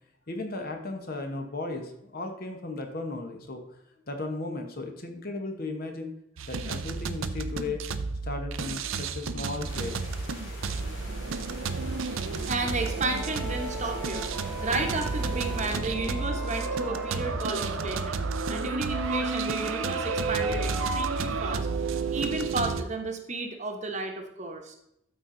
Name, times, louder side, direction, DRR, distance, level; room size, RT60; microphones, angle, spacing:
voice 1, 0.3-3.6 4.1-6.1 6.5-7.8 8.2-10.0, left 2 dB, 45° left, 4 dB, 1.2 m, -35 dB
sound 1, 6.4-22.8, right 4 dB, 75° right, 0.6 m, -31 dB
sound 2, 9.6-15.8, left 1 dB, 65° left, 3.0 m, -44 dB
voice 2, 12.5-21.7 22.1-24.8, right 2 dB, 35° right, 4 dB, 1.1 m, -33 dB
sound 3, 13.1-18.2 18.9-21.0, equal, ahead, 0.5 m, -41 dB
12.5 x 4.3 x 3.9 m, 0.80 s
head